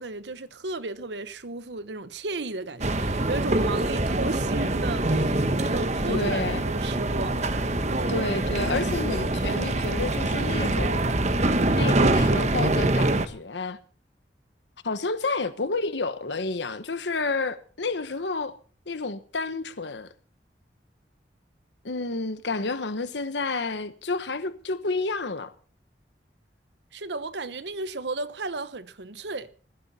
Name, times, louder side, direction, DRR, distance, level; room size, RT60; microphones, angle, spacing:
voice 1, 0.0-7.5 26.9-29.5, right 3 dB, 75° right, 1.1 m, -34 dB
sound 1, 2.8-13.3, right 2 dB, 40° right, 1.2 m, -24 dB
voice 2, 6.1-6.6 8.1-11.1 11.7-13.8 14.8-18.6 18.9-20.1 21.8-25.5, left 3 dB, 80° left, 1.1 m, -30 dB
20.0 x 15.5 x 4.2 m
head